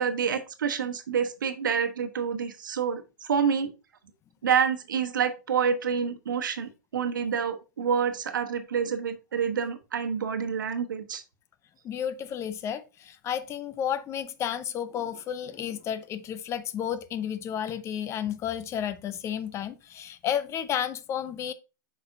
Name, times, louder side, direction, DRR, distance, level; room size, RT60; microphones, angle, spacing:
voice 1, 0.0-3.7 4.4-11.2, right 7 dB, 80° right, 1.1 m, -28 dB
voice 2, 11.8-21.5, left 9 dB, 25° left, 0.6 m, -32 dB
7.9 x 5.2 x 2.7 m
hypercardioid pair, 120°, 10 cm